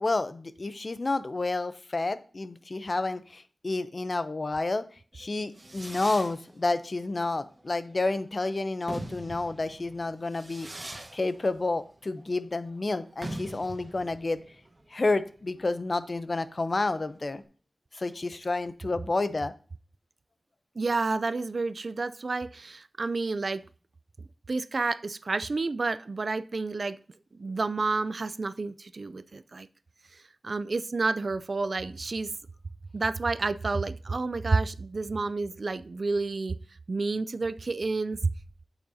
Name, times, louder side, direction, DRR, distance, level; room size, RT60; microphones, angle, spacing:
voice 1, 0.0-4.8 5.1-10.7 11.1-14.4 14.9-17.4 17.9-19.5, left 2 dB, 40° left, 0.6 m, -30 dB
Fireworks, 5.2-17.4, right 1 dB, 30° right, 1.4 m, -44 dB
voice 2, 20.8-23.6 24.5-27.0 27.4-29.7 30.4-32.3 32.9-36.6 36.9-38.3, right 3 dB, 55° right, 0.3 m, -30 dB
8.6 x 7.9 x 2.7 m
wide cardioid pair, 85°, 0 cm